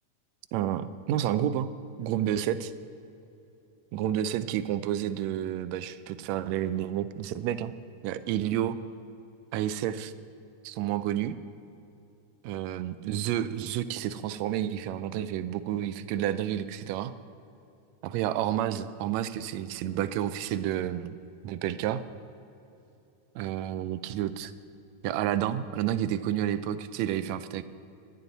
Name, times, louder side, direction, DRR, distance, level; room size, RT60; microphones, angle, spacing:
voice 1, 0.5-1.7 2.0-2.7 3.9-7.7 8.0-8.8 9.5-10.1 10.6-11.3 12.4-17.1 18.0-21.1 21.4-22.0 23.3-24.5 25.0-27.6, right 11 dB, 75° right, 13 dB, 1.7 m, -30 dB
25.0 x 11.0 x 4.1 m, 2.8 s
omnidirectional pair, 3.5 m